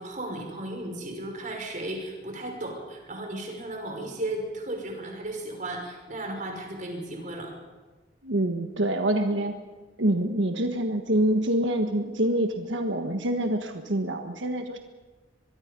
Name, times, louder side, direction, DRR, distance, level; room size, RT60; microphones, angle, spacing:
voice 1, 0.0-7.5, right 1 dB, 45° right, 2 dB, 5.8 m, -35 dB
voice 2, 8.2-9.6 10.0-14.8, right 1 dB, 90° right, 4 dB, 1.5 m, -26 dB
24.0 x 22.5 x 5.4 m, 1.3 s
head